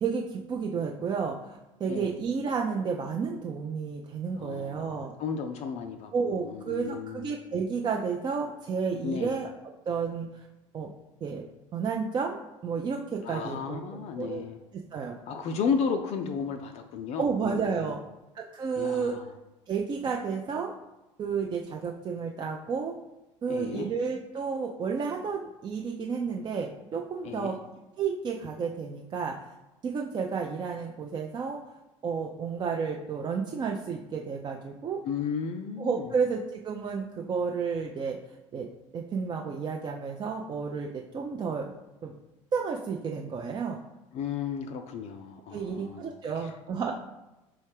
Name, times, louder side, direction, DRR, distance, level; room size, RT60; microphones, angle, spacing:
voice 1, 0.0-5.1 6.1-9.5 9.9-10.5 10.7-10.9 11.2-11.4 11.7-14.5 14.9-15.2 17.2-18.0 18.3-19.2 19.7-20.7 21.2-23.0 23.4-27.6 28.0-29.4 29.8-31.6 32.0-35.0 35.8-38.2 38.5-38.7 38.9-41.7 42.0-42.2 42.5-43.8 45.5-46.9, right 5 dB, 25° right, 0 dB, 0.4 m, -31 dB
voice 2, 4.4-7.3 9.0-9.3 13.2-14.6 15.3-18.0 18.8-19.2 23.5-23.9 27.2-27.6 35.0-36.1 44.1-46.6, left 6 dB, 40° left, 6 dB, 0.4 m, -34 dB
4.6 x 3.1 x 3.3 m, 1.0 s
figure-of-eight pair, 65°, 17 cm